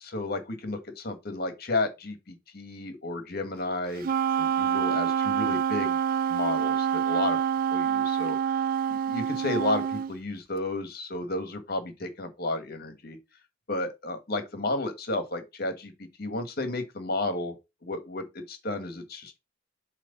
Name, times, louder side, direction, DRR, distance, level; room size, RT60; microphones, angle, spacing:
voice 1, 0.0-4.1 4.4-6.0 6.3-7.4 7.7-8.4 8.9-13.2 13.7-15.9 16.2-17.6 17.8-19.4, left 2 dB, 50° left, 1.4 m, -32 dB
Wind instrument woodwind instrument, 4.0-10.1, right 8 dB, 45° right, 0.3 m, -26 dB
7.5 x 3.2 x 5.3 m
head